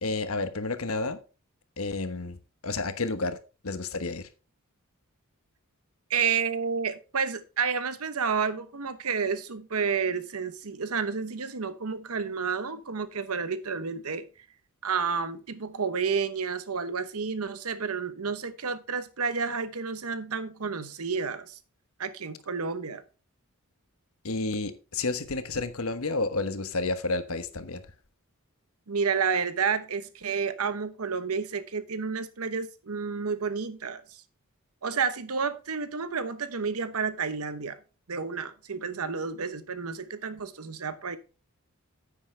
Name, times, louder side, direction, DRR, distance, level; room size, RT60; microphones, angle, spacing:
voice 1, 0.0-1.2 1.8-2.4 2.6-3.4 3.6-4.3 24.2-27.8, left 3 dB, 75° left, 1.2 m, -30 dB
voice 2, 6.1-14.3 14.8-21.6 22.0-23.0 28.9-34.2 34.8-37.8 38.1-41.2, right 5 dB, 85° right, 1.0 m, -30 dB
9.8 x 8.6 x 3.3 m
head